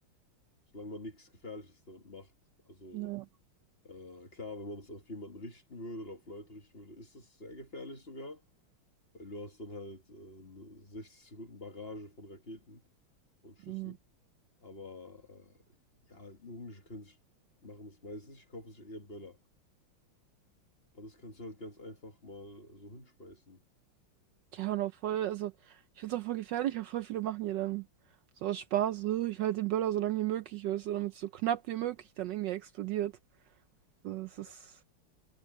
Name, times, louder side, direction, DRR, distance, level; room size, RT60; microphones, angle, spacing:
voice 1, 0.7-2.3 2.7-3.1 3.8-8.4 9.1-12.9 13.4-14.0 14.6-15.6 16.1-17.2 17.6-19.4 20.9-23.6, left 1 dB, 30° left, 1.9 m, -46 dB
voice 2, 2.9-3.2 13.7-13.9 24.5-27.8 28.4-33.1 34.0-34.8, right 13 dB, 70° right, 1.1 m, -33 dB
omnidirectional pair, 2.2 m